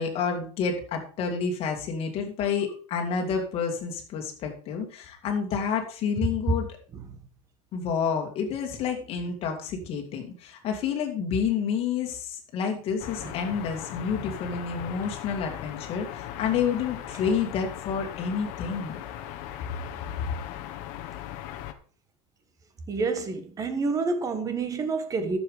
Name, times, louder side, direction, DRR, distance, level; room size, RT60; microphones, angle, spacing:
voice 1, 0.0-6.7 7.7-19.0, left 6 dB, 35° left, 2.3 m, -29 dB
sound 1, 13.0-21.7, left 12 dB, 55° left, 1.2 m, -38 dB
voice 2, 22.9-25.4, right 4 dB, 20° right, 1.3 m, -28 dB
10.5 x 7.3 x 4.9 m
cardioid pair, 165°, 17 cm